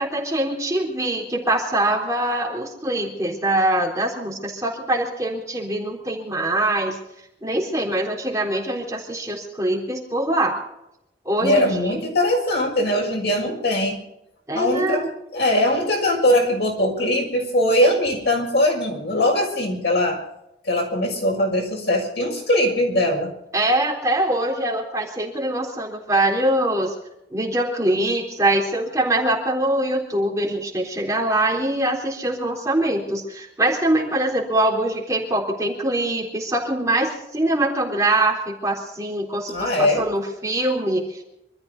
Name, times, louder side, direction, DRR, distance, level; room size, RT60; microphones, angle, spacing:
voice 1, 0.0-7.0 7.4-10.6 11.3-12.0 14.5-15.1 23.5-26.9 27.3-41.2, right 1 dB, 15° right, -2 dB, 3.8 m, -23 dB
voice 2, 11.4-14.0 14.5-15.1 15.3-20.2 20.6-23.3 39.5-40.0, left 1 dB, 75° left, 0 dB, 6.6 m, -21 dB
26.0 x 13.5 x 4.1 m, 0.82 s
head